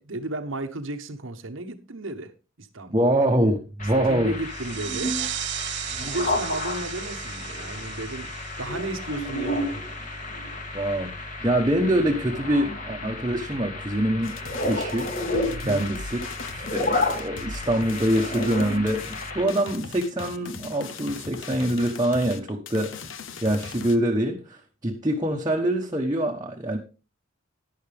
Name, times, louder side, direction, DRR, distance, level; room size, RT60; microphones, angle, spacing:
voice 1, 0.0-2.3 2.6-3.1 4.1-5.2 6.0-8.3 8.6-9.8 15.5-15.9, right 2 dB, 75° right, 1.1 m, -33 dB
voice 2, 2.9-4.3 10.7-11.1 11.4-15.1 15.6-16.2 16.5-23.1 23.4-26.8, right 1 dB, 20° right, 1.1 m, -25 dB
sound 1, 3.8-19.4, left 1 dB, 40° left, 2.2 m, -31 dB
sound 2, 4.4-9.7, right 13 dB, 60° right, 0.6 m, -36 dB
sound 3, 14.2-24.0, left 5 dB, 70° left, 0.9 m, -39 dB
11.5 x 10.0 x 3.5 m
head